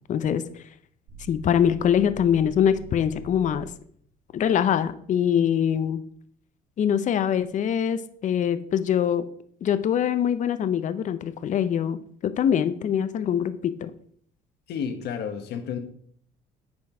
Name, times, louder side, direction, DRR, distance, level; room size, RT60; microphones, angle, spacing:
voice 1, 0.1-0.6 1.3-3.7 4.3-6.0 6.8-9.3 9.6-13.9, left 9 dB, 45° left, 13 dB, 0.6 m, -23 dB
sound 1, 1.1-3.9, right 4 dB, 70° right, 2.1 m, -45 dB
voice 2, 14.7-15.8, left 7 dB, 75° left, 7 dB, 1.3 m, -31 dB
9.5 x 4.5 x 4.4 m, 0.62 s
cardioid pair, 110°, 17 cm